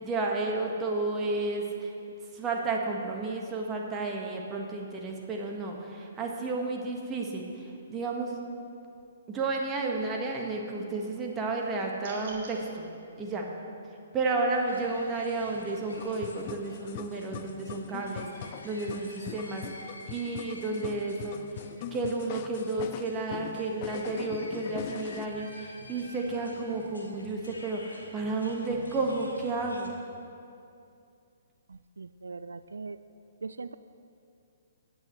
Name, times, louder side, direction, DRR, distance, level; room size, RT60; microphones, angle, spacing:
voice 1, 0.0-1.9 2.3-8.3 9.3-12.9 13.2-13.5 14.1-21.4 21.9-29.9, right 3 dB, 20° right, 0 dB, 1.5 m, -32 dB
sound 1, 12.0-12.6, right 3 dB, 55° right, 2.5 m, -45 dB
sound 2, 14.5-29.9, left 2 dB, 85° left, 1.7 m, -49 dB
sound 3, 15.9-25.3, left 11 dB, 40° left, 0.4 m, -42 dB
voice 2, 31.7-33.0 33.4-33.7, right 4 dB, 80° right, 13 dB, 0.3 m, -40 dB
18.5 x 8.7 x 3.2 m, 2.5 s
figure-of-eight pair, 130°, 0 cm